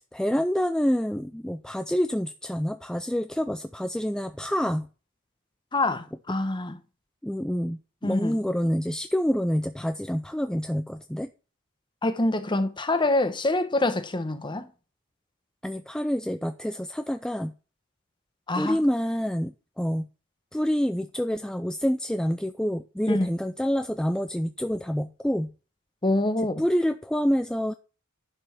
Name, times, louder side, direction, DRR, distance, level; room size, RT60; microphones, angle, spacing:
voice 1, 0.0-4.9 7.2-11.3 15.6-17.5 18.5-20.1 20.5-25.5 26.6-27.7, equal, 5° left, 0.4 m, -27 dB
voice 2, 5.7-6.8 8.0-8.4 12.0-14.7 18.5-18.8 23.1-23.3 26.0-26.6, left 2 dB, 20° left, 1.1 m, -25 dB
11.0 x 5.4 x 5.8 m
head